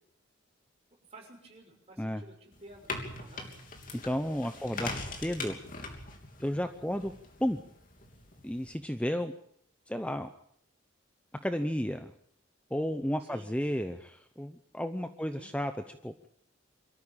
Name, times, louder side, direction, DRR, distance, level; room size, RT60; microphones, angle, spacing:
voice 1, 1.1-2.9 3.2-3.5 4.6-4.9 13.2-13.5 15.2-15.5, right 1 dB, 30° right, 1 dB, 6.3 m, -53 dB
sound 1, 2.5-8.7, left 3 dB, 45° left, 3.3 m, -42 dB
voice 2, 4.0-5.6 6.4-7.1 7.4-7.6 8.4-9.3 9.9-10.3 11.4-12.1 12.7-16.1, equal, 5° left, 9 dB, 0.8 m, -33 dB
24.5 x 14.0 x 8.9 m, 0.69 s
head